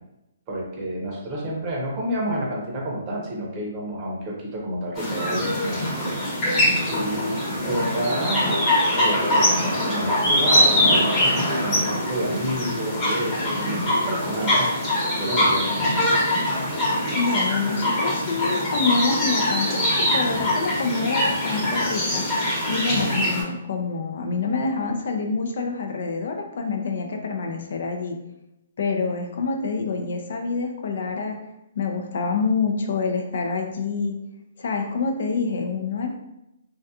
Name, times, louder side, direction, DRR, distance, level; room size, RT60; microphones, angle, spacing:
voice 1, 0.5-6.2 6.4-8.7 8.9-14.7 15.2-16.1, right 1 dB, 30° right, -3 dB, 0.7 m, -29 dB
sound 1, 4.9-23.4, left 1 dB, 20° left, 0.9 m, -23 dB
voice 2, 17.1-22.4 22.7-28.2 28.8-31.4 31.8-34.1 34.6-36.1, left 4 dB, 65° left, 3 dB, 0.4 m, -26 dB
2.3 x 2.2 x 2.7 m, 0.88 s
hypercardioid pair, 160°, 0 cm